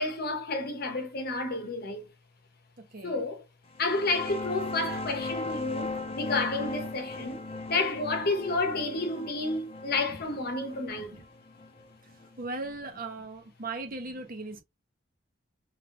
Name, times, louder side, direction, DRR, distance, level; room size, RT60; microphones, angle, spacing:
voice 1, 0.0-2.1 3.0-3.4 3.8-7.4 7.7-11.1, left 2 dB, 55° left, 0.9 m, -30 dB
voice 2, 2.8-3.2 8.2-8.4 10.1-10.2 11.1-11.2 12.0-14.6, right 3 dB, 50° right, 1.0 m, -39 dB
sound 1, 3.7-13.1, left 3 dB, 30° left, 0.5 m, -38 dB
3.5 x 3.3 x 2.5 m
head